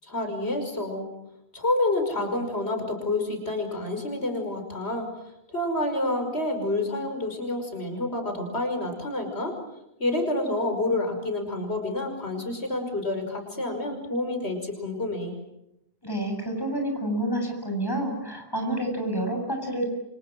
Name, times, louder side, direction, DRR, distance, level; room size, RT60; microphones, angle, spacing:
voice 1, 0.0-1.1 1.5-5.1 5.5-9.5 10.0-15.3, left 2 dB, 85° left, 5 dB, 5.8 m, -28 dB
voice 2, 16.0-19.9, right 1 dB, 20° left, 2 dB, 7.9 m, -28 dB
29.5 x 26.0 x 7.7 m, 0.86 s
omnidirectional pair, 1.1 m